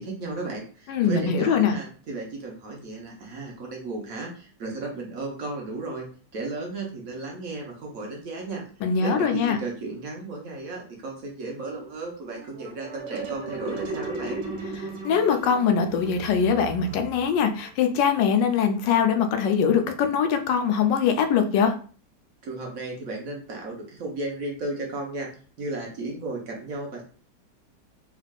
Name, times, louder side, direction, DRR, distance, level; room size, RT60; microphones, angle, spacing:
voice 1, 0.0-6.1 6.3-8.6 9.0-14.4 22.4-25.3 25.6-27.0, right 2 dB, 55° right, 0 dB, 1.2 m, -34 dB
voice 2, 0.9-1.7 8.8-9.6 15.0-21.7, left 7 dB, 85° left, 6 dB, 1.2 m, -22 dB
sound 1, 12.3-17.7, right 3 dB, 90° right, 1.3 m, -36 dB
3.6 x 3.4 x 2.3 m, 0.41 s
omnidirectional pair, 1.9 m